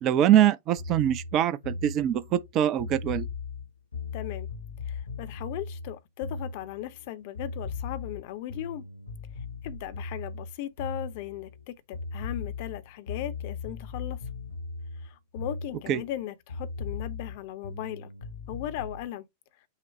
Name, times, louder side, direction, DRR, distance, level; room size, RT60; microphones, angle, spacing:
voice 1, 0.0-3.3 15.9-16.0, right 11 dB, 35° right, 0.5 m, -23 dB
sound 1, 0.8-7.1 7.3-11.6 11.9-16.2 16.5-19.0, left 4 dB, 80° left, 0.9 m, -38 dB
voice 2, 4.1-4.5 4.9-8.8 9.6-14.2 15.0-18.1 18.5-19.3, left 13 dB, 50° left, 0.7 m, -37 dB
5.7 x 2.1 x 4.2 m
figure-of-eight pair, 90°, 0 cm